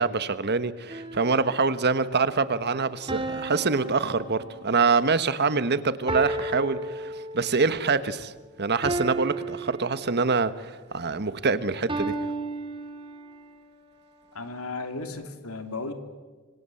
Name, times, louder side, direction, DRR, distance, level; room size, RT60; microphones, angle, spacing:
voice 1, 0.0-8.3 8.6-12.1, right 4 dB, 50° right, 13 dB, 1.3 m, -25 dB
sound 1, 0.9-1.7 3.1-4.9 6.1-7.7 8.8-10.5 11.9-13.5, right 2 dB, 25° right, 2.2 m, -33 dB
voice 2, 14.3-15.9, left 3 dB, 85° left, 7 dB, 3.0 m, -35 dB
26.0 x 25.5 x 7.8 m, 1.4 s
head